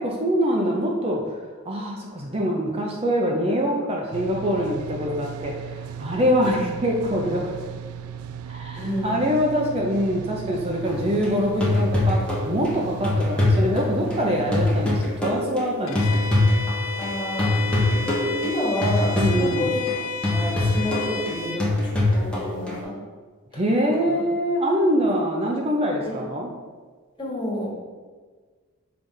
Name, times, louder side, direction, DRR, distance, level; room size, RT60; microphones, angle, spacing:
voice 1, 0.0-1.4 1.6-7.6 8.5-12.2 12.5-16.3 19.2-19.7 23.5-26.5, equal, 30° right, -1 dB, 0.6 m, -24 dB
sound 1, 4.1-15.1, right 8 dB, 90° right, 0.3 m, -36 dB
voice 2, 8.8-9.1 17.0-17.8 18.0-18.1 18.4-19.8 20.3-22.9 23.5-23.6 24.0-24.2 26.1-26.2 27.2-27.7, left 1 dB, 25° left, -4 dB, 1.5 m, -29 dB
sound 2, 10.9-17.1 17.4-22.8, left 1 dB, 5° left, 1.1 m, -24 dB
Bowed string instrument, 15.9-21.7, left 5 dB, 70° left, 0.7 m, -32 dB
5.4 x 3.4 x 5.3 m, 1.5 s
head